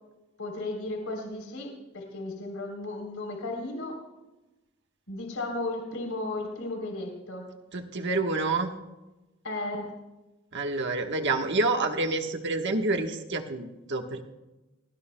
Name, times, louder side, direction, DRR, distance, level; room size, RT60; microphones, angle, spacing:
voice 1, 0.4-4.0 5.1-7.5 9.4-9.9, left 2 dB, 75° left, 2 dB, 3.5 m, -34 dB
voice 2, 7.7-8.7 10.5-14.2, right 3 dB, 55° right, 4 dB, 1.3 m, -28 dB
27.0 x 19.0 x 2.2 m, 1.1 s
head